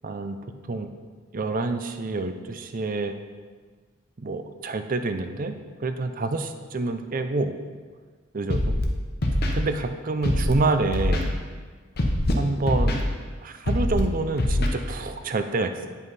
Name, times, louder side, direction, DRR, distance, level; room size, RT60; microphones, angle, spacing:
voice 1, 0.0-0.4 0.7-0.9 1.3-3.1 4.2-7.5 8.3-8.8 9.5-11.4 12.4-13.1 13.4-15.9, right 3 dB, 40° right, 8 dB, 0.5 m, -27 dB
Scratching (performance technique), 8.5-8.9 9.2-9.5 10.2-10.5 10.9-11.2 12.0-12.3 12.7-13.0 13.7-14.0 14.4-14.7, left 1 dB, 50° left, 0.9 m, -23 dB
9.3 x 5.5 x 4.1 m, 1.5 s
head